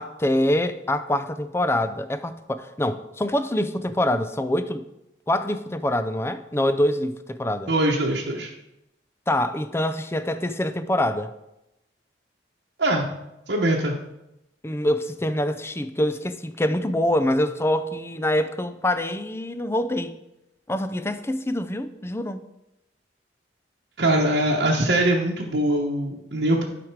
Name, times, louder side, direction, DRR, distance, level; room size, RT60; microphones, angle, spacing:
voice 1, 0.0-4.9 5.3-7.7 9.3-11.3 14.6-20.1 20.7-22.5, left 1 dB, 15° left, 0.5 m, -25 dB
voice 2, 7.7-8.5 12.8-13.1 13.5-14.0 24.0-26.6, right 1 dB, 70° right, 1.1 m, -22 dB
12.0 x 5.1 x 4.7 m
head